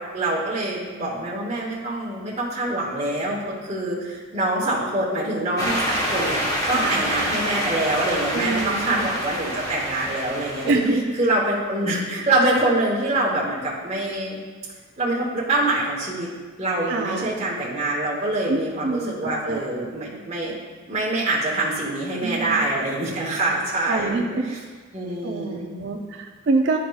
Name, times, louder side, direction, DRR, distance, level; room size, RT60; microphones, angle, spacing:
voice 1, 0.0-10.7 11.2-14.3 15.0-16.3 16.6-20.5 20.9-24.2 24.4-24.6 24.9-25.8, right 2 dB, 35° right, -6 dB, 1.1 m, -25 dB
sound 1, 5.6-10.9, equal, 20° left, 1.0 m, -27 dB
voice 2, 6.7-7.1 8.3-9.1 10.6-11.1 16.9-17.4 18.5-19.7 22.2-22.7 23.9-24.6 25.2-26.8, right 3 dB, 60° right, 2 dB, 0.5 m, -26 dB
11.0 x 4.8 x 2.3 m, 1.4 s
head